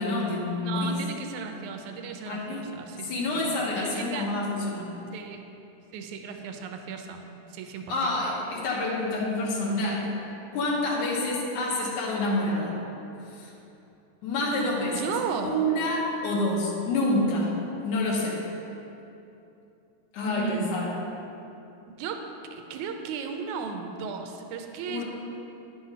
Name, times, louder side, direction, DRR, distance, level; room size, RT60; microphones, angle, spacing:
voice 1, 0.0-0.9 2.3-2.8 3.1-4.9 7.9-10.1 10.5-12.8 13.3-13.5 14.2-15.0 15.4-17.5 17.8-18.4 20.1-20.9 24.9-25.0, left 1 dB, 90° left, -4 dB, 2.9 m, -27 dB
voice 2, 0.6-4.3 5.1-5.4 5.9-7.2 7.5-8.1 14.9-15.6 20.3-20.7 22.0-22.2 22.5-25.0, right 6 dB, 80° right, 5 dB, 2.1 m, -35 dB
10.5 x 6.0 x 5.7 m, 2.8 s
omnidirectional pair, 3.4 m